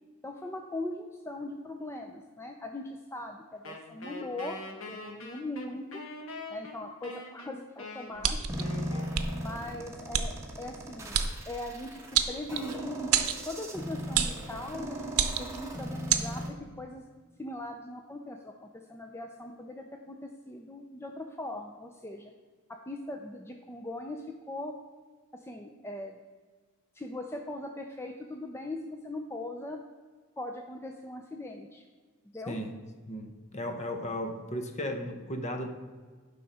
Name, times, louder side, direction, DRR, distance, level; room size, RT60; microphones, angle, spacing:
voice 1, 0.2-4.6 4.9-6.0 6.5-8.4 9.3-11.2 11.5-13.1 13.5-15.1 15.4-16.4 16.8-17.0 17.4-22.3 22.7-24.7 25.3-26.2 26.9-29.8 30.4-31.8 32.3-32.6, left 1 dB, 10° left, 3 dB, 0.5 m, -40 dB
Wind instrument woodwind instrument, 3.6-9.9, left 2 dB, 70° left, 1.3 m, -44 dB
sound 1, 8.2-8.6 9.1-9.3 10.1-10.3 11.1-11.3 12.1-12.7 13.1-13.4 14.1-14.4 15.1-15.6 16.1-16.3, right 9 dB, 85° right, 0.7 m, -27 dB
sound 2, 8.5-16.5, equal, 15° right, 1.3 m, -38 dB
voice 2, 32.5-32.8 33.1-35.7, left 1 dB, 35° left, 6 dB, 0.9 m, -35 dB
11.0 x 5.6 x 4.2 m, 1.5 s
head